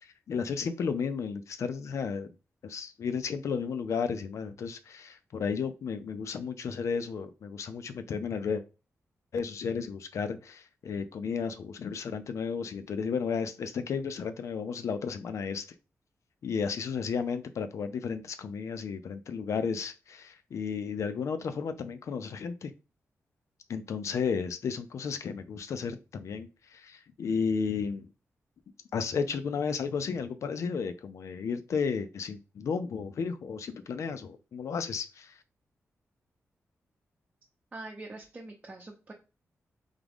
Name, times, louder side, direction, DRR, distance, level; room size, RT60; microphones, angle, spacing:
voice 1, 0.0-2.3 2.6-8.6 9.3-15.6 16.4-22.7 23.7-28.1 28.9-35.4, left 6 dB, 75° left, 0.5 m, -33 dB
voice 2, 37.7-39.1, right 2 dB, 25° right, 0.7 m, -44 dB
3.7 x 3.5 x 3.5 m
wide cardioid pair, 145°, 5 cm